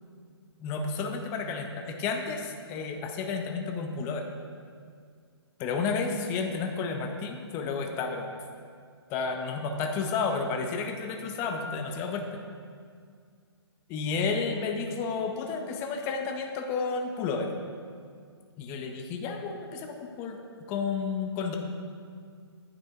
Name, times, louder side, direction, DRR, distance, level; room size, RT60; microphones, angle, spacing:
voice 1, 0.6-4.3 5.6-8.4 9.1-12.3 13.9-17.5 18.6-21.6, left 4 dB, 15° left, 4 dB, 0.4 m, -31 dB
9.3 x 3.4 x 4.3 m, 2.1 s
figure-of-eight pair, 135°, 14 cm